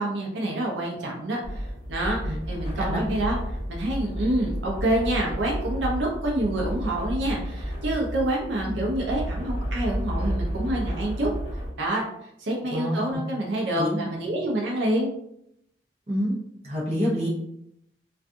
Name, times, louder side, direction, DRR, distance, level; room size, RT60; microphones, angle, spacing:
voice 1, 0.0-3.4 3.7-11.3 11.8-12.0 12.4-15.1, right 1 dB, 80° right, -2 dB, 0.6 m, -27 dB
sound 1, 1.4-11.7, equal, 30° left, 0.9 m, -31 dB
voice 2, 12.7-13.2 13.8-14.0 16.1-16.3 16.6-17.3, equal, 35° right, -5 dB, 0.7 m, -27 dB
2.5 x 2.3 x 2.5 m, 0.76 s
head